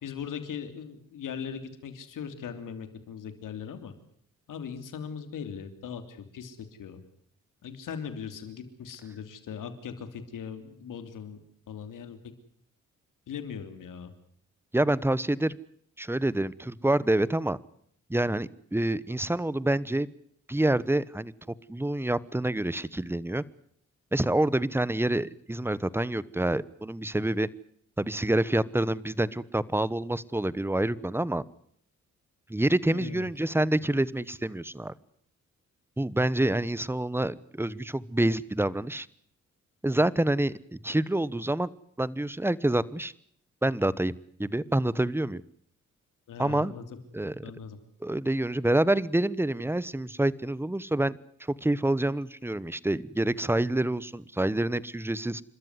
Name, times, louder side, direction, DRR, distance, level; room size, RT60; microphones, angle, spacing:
voice 1, 0.0-3.9 4.5-7.0 7.6-11.4 11.7-12.2 13.3-14.1 32.9-33.3 46.3-46.8 47.4-47.8, left 7 dB, 80° left, 9 dB, 3.2 m, -39 dB
voice 2, 14.7-15.5 16.0-17.6 18.1-20.1 20.5-23.4 24.1-27.5 28.0-31.4 32.5-34.9 36.0-39.1 39.8-41.7 42.0-43.1 43.6-44.1 44.4-45.4 46.4-46.7 47.1-47.4 48.0-55.4, right 1 dB, 5° right, 20 dB, 1.0 m, -27 dB
29.5 x 13.5 x 9.6 m, 0.66 s
cardioid pair, 70°, 31 cm